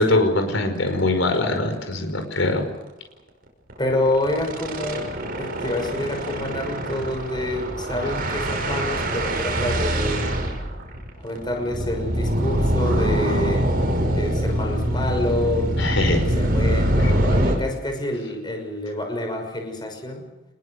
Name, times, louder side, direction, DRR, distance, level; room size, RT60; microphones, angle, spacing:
voice 1, 0.0-2.7 15.8-16.2, left 2 dB, 70° left, 6 dB, 5.3 m, -22 dB
sound 1, 0.9-1.0 1.3-1.4 1.7-1.9 2.2-2.4 3.7-17.6, right 1 dB, 45° right, 6.0 m, -24 dB
voice 2, 3.8-5.0 5.4-10.4 11.2-13.7 14.1-15.7 16.1-20.3, left 1 dB, 20° left, 4 dB, 6.2 m, -27 dB
27.0 x 22.0 x 6.6 m, 1.0 s
head